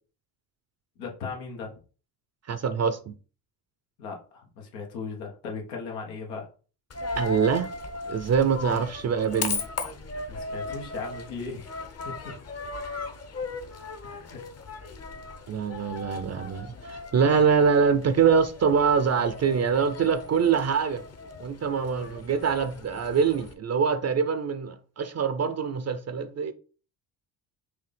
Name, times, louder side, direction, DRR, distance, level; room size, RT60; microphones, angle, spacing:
voice 1, 1.0-1.7 4.0-6.5 10.3-11.7 12.0-12.2 14.0-14.4, left 4 dB, 90° left, 1.2 m, -37 dB
voice 2, 2.5-3.1 7.1-7.7 8.1-9.6 15.5-21.0 21.4-26.5, right 6 dB, 35° right, 0.5 m, -24 dB
Coin (dropping), 6.9-23.5, left 3 dB, 30° left, 0.8 m, -37 dB
4.9 x 2.7 x 3.3 m
supercardioid pair, 65°, 49 cm